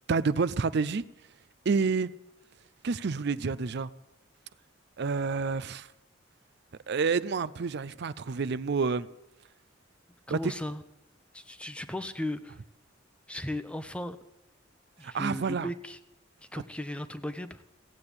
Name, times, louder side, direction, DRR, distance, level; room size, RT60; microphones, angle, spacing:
voice 1, 0.1-1.0 1.7-2.1 2.8-3.9 5.0-5.9 6.9-9.1 10.3-10.5 15.0-15.7, right 4 dB, 55° right, 17 dB, 0.5 m, -28 dB
voice 2, 10.3-10.8 11.3-12.6 13.3-14.2 15.0-16.0 16.5-17.6, left 1 dB, 5° left, 11 dB, 0.7 m, -36 dB
16.0 x 8.7 x 9.8 m, 0.90 s
head